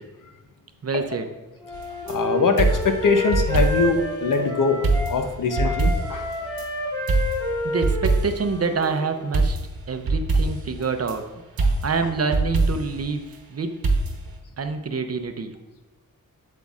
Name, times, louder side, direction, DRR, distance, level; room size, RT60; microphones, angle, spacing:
voice 1, 0.8-1.3 7.6-9.6 9.9-11.3 11.8-13.8 14.6-15.6, right 4 dB, 45° right, 7 dB, 0.6 m, -26 dB
Wind instrument woodwind instrument, 1.6-5.2 5.5-9.3, equal, 15° left, 2.3 m, -30 dB
sound 1, 1.7-2.2 2.6-4.0 4.3-4.4 4.8-6.7 7.1-8.5 9.3-11.2 11.6-13.0 13.8-14.4, right 3 dB, 85° right, 1.0 m, -24 dB
voice 2, 2.1-4.8 5.1-6.3 11.6-11.7, left 4 dB, 65° left, 6 dB, 0.8 m, -22 dB
7.9 x 7.4 x 2.4 m, 1.2 s
wide cardioid pair, 115°, 34 cm